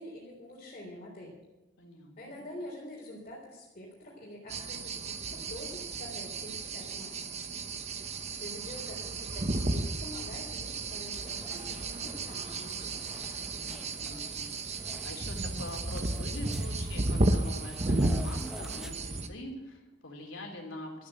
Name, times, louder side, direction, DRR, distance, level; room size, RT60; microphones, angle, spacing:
voice 1, 0.0-1.4 2.2-7.3 8.3-12.9, left 1 dB, 40° left, -5 dB, 3.7 m, -46 dB
voice 2, 1.8-2.4 13.3-14.5 15.0-21.1, left 1 dB, 80° left, 1 dB, 3.2 m, -44 dB
sound 1, 4.5-19.3, right 2 dB, 35° right, 1.0 m, -33 dB
sound 2, 11.1-18.9, equal, 5° right, 1.1 m, -49 dB
13.5 x 9.4 x 7.8 m, 1.1 s
head